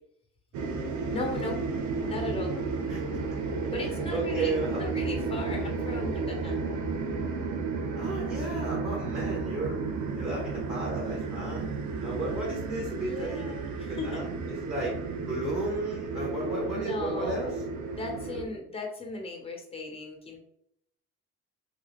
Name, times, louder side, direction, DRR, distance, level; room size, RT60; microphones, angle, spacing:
sound 1, 0.5-18.4, right 4 dB, 65° right, 0.6 m, -33 dB
voice 1, 1.1-1.6 2.0-2.5 3.7-6.6 12.6-14.2 16.7-17.5 17.9-20.4, left 2 dB, 20° left, 1 dB, 0.8 m, -37 dB
voice 2, 4.1-4.8 7.9-9.8 10.2-11.7 12.0-13.6 13.9-14.9 15.2-17.5, right 2 dB, 20° right, -4 dB, 1.0 m, -33 dB
2.4 x 2.3 x 3.2 m, 0.73 s
cardioid pair, 85°, 32 cm